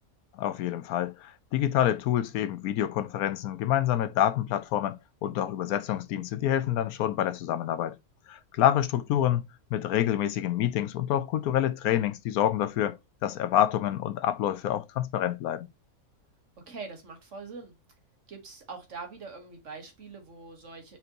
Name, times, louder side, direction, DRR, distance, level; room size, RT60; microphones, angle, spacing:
voice 1, 0.3-8.0 8.3-9.4 9.7-15.7, left 11 dB, 80° left, 1.1 m, -27 dB
voice 2, 16.7-17.8 18.3-21.0, right 4 dB, 55° right, 1.6 m, -43 dB
5.2 x 3.6 x 2.8 m
omnidirectional pair, 1.6 m